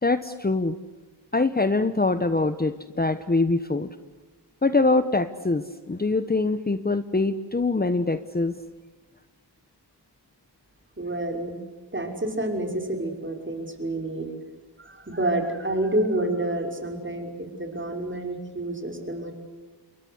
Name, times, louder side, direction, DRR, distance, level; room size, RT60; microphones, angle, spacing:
voice 1, 0.0-0.8 1.3-3.9 4.6-8.6, left 3 dB, 20° left, 12 dB, 1.1 m, -24 dB
voice 2, 11.0-11.6 11.9-14.3 14.8-19.3, right 1 dB, 30° right, 4 dB, 5.9 m, -28 dB
28.0 x 23.0 x 8.1 m, 1.2 s
wide cardioid pair, 70°, 42 cm